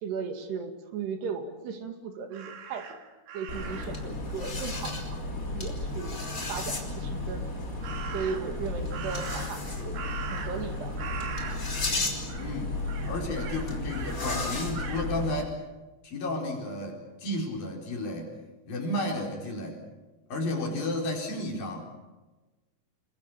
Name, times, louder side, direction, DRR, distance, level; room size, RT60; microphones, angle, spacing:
voice 1, 0.0-3.0 3.3-5.2 5.5-6.2 6.5-7.5 8.1-10.0 10.3-10.9 18.9-19.2 20.5-20.7, right 6 dB, 85° right, 6 dB, 4.3 m, -36 dB
Crow, 2.3-4.1 7.8-8.6 8.9-10.7 11.0-12.0 12.3-12.6 12.9-14.2 14.7-15.1, right 6 dB, 65° right, 3.8 m, -40 dB
sound 1, 3.5-15.4, left 2 dB, 20° left, 3.3 m, -33 dB
voice 2, 12.4-12.7 13.1-15.6 16.0-18.3 18.7-19.8 20.3-21.8, left 1 dB, 60° left, 0 dB, 6.2 m, -32 dB
28.5 x 22.0 x 7.1 m, 1.1 s
omnidirectional pair, 4.6 m